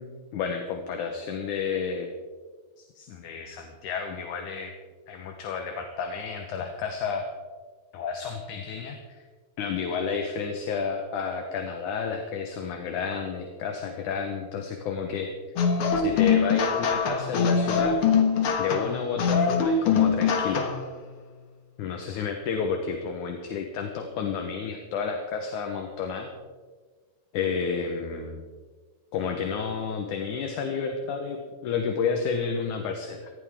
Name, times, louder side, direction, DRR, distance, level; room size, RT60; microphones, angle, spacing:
voice 1, 0.0-2.1 2.8-4.7 5.1-7.3 7.9-9.2 9.6-15.3 16.0-18.0 18.6-20.7 21.8-26.3 27.3-28.4 29.1-33.3, left 5 dB, 70° left, 4 dB, 2.4 m, -31 dB
sound 1, 15.6-20.9, left 6 dB, 50° left, 1.9 m, -23 dB
19.5 x 14.5 x 3.7 m, 1.5 s
omnidirectional pair, 4.0 m